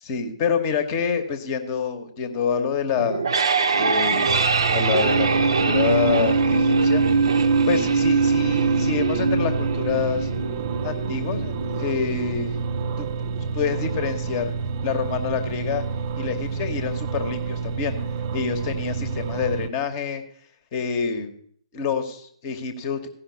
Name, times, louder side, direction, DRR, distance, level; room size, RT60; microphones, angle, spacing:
voice 1, 0.0-3.2 3.8-7.0 7.7-10.3 10.8-12.6 13.0-13.1 13.5-14.5 14.8-15.8 16.2-18.0 18.3-20.2 20.7-21.3 21.7-23.1, left 6 dB, 25° left, 9 dB, 1.0 m, -27 dB
sound 1, 3.0-14.0, right 4 dB, 50° right, 0.8 m, -22 dB
sound 2, 4.3-19.7, right 5 dB, 30° right, 0.5 m, -29 dB
14.5 x 5.7 x 6.8 m, 0.63 s
figure-of-eight pair, 135°, 3 cm